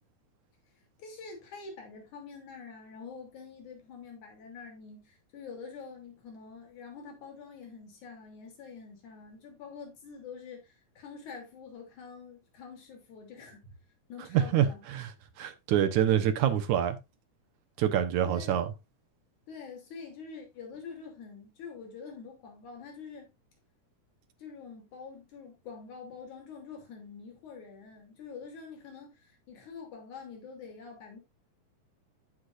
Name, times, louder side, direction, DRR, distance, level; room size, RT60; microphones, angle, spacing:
voice 1, 1.0-13.7 14.1-14.8 18.3-18.6 19.5-23.3 24.4-31.2, left 5 dB, 75° left, 4.4 m, -46 dB
voice 2, 14.3-15.1 15.4-17.0 17.8-18.7, right 10 dB, 75° right, 2.5 m, -26 dB
15.0 x 6.0 x 2.5 m
omnidirectional pair, 3.4 m